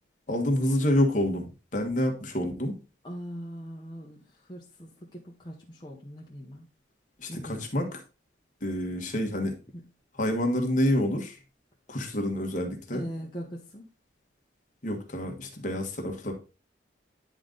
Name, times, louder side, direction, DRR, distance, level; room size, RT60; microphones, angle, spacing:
voice 1, 0.3-2.8 7.2-8.0 8.6-9.6 10.2-11.4 11.9-13.0 14.8-16.3, left 1 dB, 40° left, 3 dB, 1.4 m, -28 dB
voice 2, 3.0-6.7 7.3-7.7 9.7-9.9 12.9-13.9, equal, 25° left, -3 dB, 0.9 m, -41 dB
9.9 x 3.8 x 3.8 m, 0.32 s
head